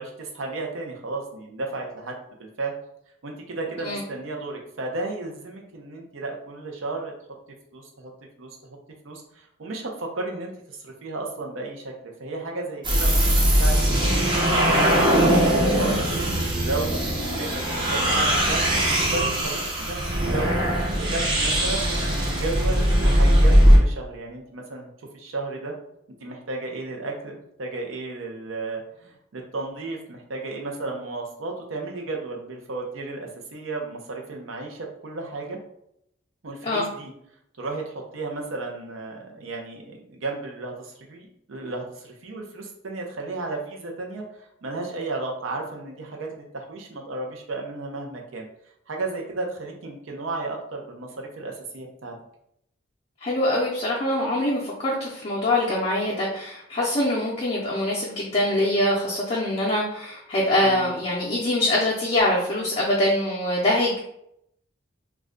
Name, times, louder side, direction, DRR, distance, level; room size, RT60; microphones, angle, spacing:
voice 1, 0.0-2.7 3.2-7.1 7.7-8.1 8.4-8.8 9.0-14.2 14.5-14.8 15.3-21.8 22.1-25.8 26.2-35.6 36.4-37.1 37.6-48.4 48.9-52.2 60.6-61.0, right 3 dB, 75° right, 1 dB, 0.6 m, -34 dB
sound 1, 12.8-23.8, equal, 25° right, 0.5 m, -20 dB
voice 2, 53.2-64.0, left 1 dB, 30° left, -5 dB, 0.5 m, -24 dB
2.3 x 2.1 x 3.7 m, 0.75 s
head